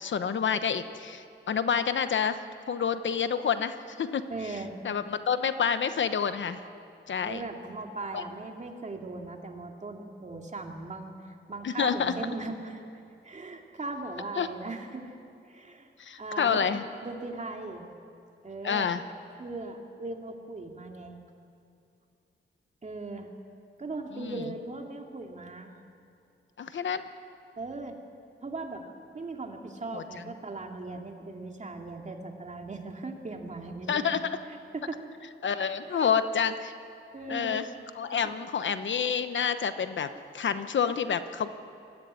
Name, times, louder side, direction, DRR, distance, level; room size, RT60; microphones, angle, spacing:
voice 1, 0.0-4.2 4.8-6.6 7.1-7.4 8.1-8.2 11.6-12.1 14.4-14.5 16.0-16.8 18.6-19.0 24.2-24.4 26.6-27.0 29.9-30.0 33.9-34.2 35.4-36.7 37.3-37.7 37.9-40.1 40.3-41.5, left 7 dB, 70° left, 10 dB, 1.0 m, -28 dB
voice 2, 4.3-4.8 7.2-12.8 13.2-15.1 15.5-15.9 16.2-16.7 17.0-17.9 18.4-18.9 19.4-21.2 22.8-23.3 23.8-25.8 27.6-28.0 28.4-28.8 29.1-35.1 35.8-36.1 37.1-37.6 38.1-38.2, right 3 dB, 35° right, 2 dB, 2.5 m, -39 dB
21.5 x 14.5 x 9.6 m, 2.6 s
wide cardioid pair, 90°, 20 cm